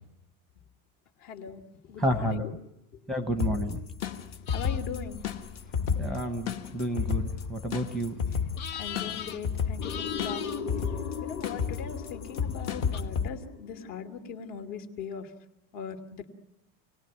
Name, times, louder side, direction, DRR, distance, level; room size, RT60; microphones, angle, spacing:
voice 1, 1.2-1.6 1.9-2.5 4.5-5.2 8.7-10.7 11.2-15.3 15.7-16.3, left 6 dB, 50° left, 6 dB, 2.9 m, -40 dB
voice 2, 2.0-2.6 3.1-3.8 5.9-8.4, right 1 dB, ahead, 7 dB, 0.9 m, -30 dB
sound 1, 3.4-13.3, left 6 dB, 35° left, 1.2 m, -32 dB
sound 2, 4.5-13.0, left 9 dB, 70° left, 2.2 m, -43 dB
sound 3, 9.8-14.5, left 6 dB, 90° left, 3.0 m, -39 dB
28.5 x 19.0 x 9.4 m, 0.91 s
supercardioid pair, 175°, 45 cm